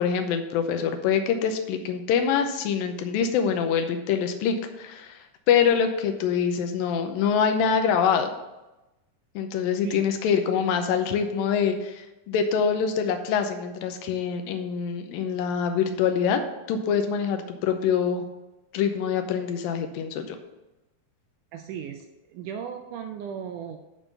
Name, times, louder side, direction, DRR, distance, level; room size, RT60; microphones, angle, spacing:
voice 1, 0.0-8.3 9.4-16.4 16.7-18.2 18.7-20.4, left 7 dB, 85° left, 6 dB, 2.5 m, -25 dB
voice 2, 21.5-23.8, right 8 dB, 80° right, 5 dB, 1.9 m, -36 dB
11.0 x 3.7 x 6.7 m, 1.0 s
omnidirectional pair, 4.1 m